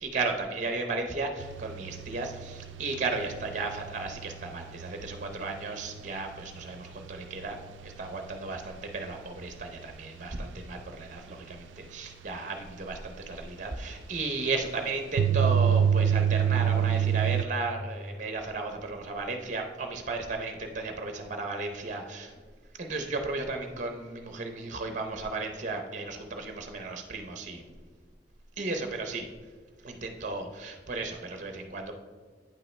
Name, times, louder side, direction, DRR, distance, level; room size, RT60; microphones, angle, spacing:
voice 1, 0.0-7.6 7.8-22.3 22.8-27.6 28.6-29.2 29.8-32.0, right 3 dB, 40° right, 5 dB, 0.6 m, -34 dB
sound 1, 1.4-6.3 6.6-6.8 7.2-7.3 7.8-7.9 12.9-13.0 15.2-17.4, right 8 dB, 90° right, 0.3 m, -27 dB
8.8 x 5.5 x 3.2 m, 1.5 s
head